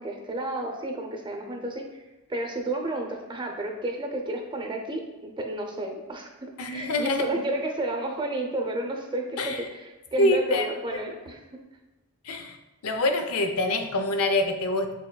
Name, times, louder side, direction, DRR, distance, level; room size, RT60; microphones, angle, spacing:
voice 1, 0.0-2.0 2.3-11.4, right 1 dB, 20° right, 2 dB, 0.6 m, -31 dB
voice 2, 6.6-7.3 9.4-9.6 10.2-10.7 12.2-12.6 12.8-14.9, left 2 dB, 85° left, 6 dB, 0.5 m, -25 dB
6.7 x 3.5 x 2.2 m, 1.1 s
head